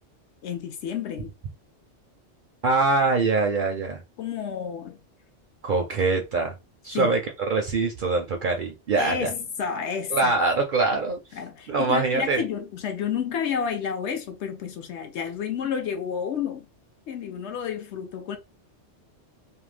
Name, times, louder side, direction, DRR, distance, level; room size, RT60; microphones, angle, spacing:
voice 1, 0.4-1.3 4.2-5.0 6.9-7.2 9.0-10.3 11.3-16.7 17.1-18.4, left 7 dB, 70° left, 0.9 m, -30 dB
voice 2, 2.6-4.0 5.6-6.5 6.8-7.2 7.5-9.3 10.1-11.2 11.7-12.4, right 3 dB, 60° right, 0.5 m, -23 dB
2.6 x 2.1 x 3.2 m
omnidirectional pair, 1.3 m